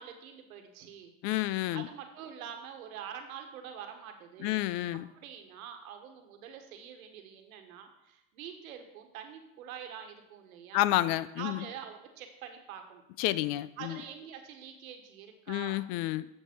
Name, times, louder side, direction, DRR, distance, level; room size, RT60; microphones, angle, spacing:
voice 1, 0.0-1.1 1.7-4.6 5.2-10.8 11.4-13.0 13.8-15.8, right 8 dB, 90° right, 6 dB, 1.4 m, -45 dB
voice 2, 1.2-1.9 4.4-5.1 10.7-11.7 13.2-14.0 15.5-16.3, left 15 dB, 60° left, 17 dB, 0.5 m, -30 dB
8.8 x 6.6 x 4.5 m, 0.88 s
supercardioid pair, 105°, 41 cm